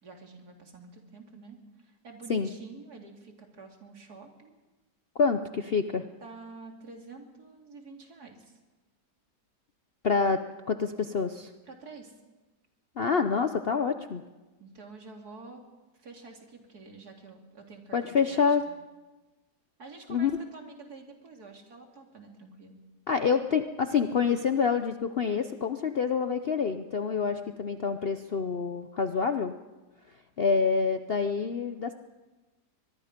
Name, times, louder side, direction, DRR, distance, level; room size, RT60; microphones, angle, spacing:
voice 1, 0.0-4.5 6.2-8.6 11.6-12.2 14.6-15.6 15.9-18.8 19.8-22.8, right 4 dB, 65° right, 2 dB, 3.2 m, -48 dB
voice 2, 5.2-6.0 10.0-10.4 10.7-11.5 13.0-14.2 17.9-18.6 20.1-20.3 23.1-29.5 30.4-31.9, left 5 dB, 50° left, 8 dB, 0.7 m, -27 dB
23.5 x 21.5 x 5.2 m, 1.2 s
omnidirectional pair, 1.8 m